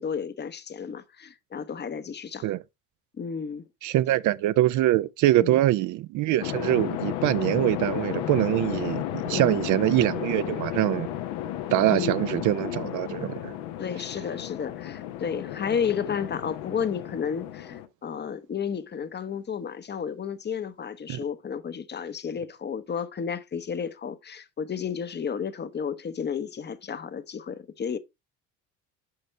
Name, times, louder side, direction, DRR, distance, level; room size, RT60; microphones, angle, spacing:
voice 1, 0.0-2.5 3.2-3.7 5.4-5.6 9.3-9.6 11.9-12.2 13.8-28.0, left 7 dB, 30° left, 0.8 m, -32 dB
voice 2, 3.8-11.1 11.7-13.5 21.1-21.2, right 15 dB, 55° right, 0.5 m, -24 dB
sound 1, 6.4-17.9, left 12 dB, 75° left, 0.9 m, -33 dB
6.8 x 5.3 x 3.1 m
hypercardioid pair, 70°, 37 cm